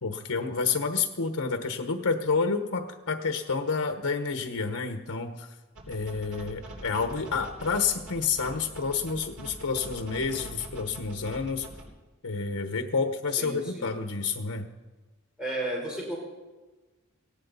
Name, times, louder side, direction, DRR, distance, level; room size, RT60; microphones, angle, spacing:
voice 1, 0.0-5.5 5.9-11.7 12.2-14.7, left 4 dB, 90° left, 7 dB, 1.1 m, -29 dB
sound 1, 5.7-11.8, right 1 dB, 85° right, 4.2 m, -43 dB
voice 2, 13.4-13.9 15.4-16.2, right 1 dB, 5° right, -4 dB, 4.0 m, -33 dB
18.0 x 17.5 x 4.0 m, 1.2 s
head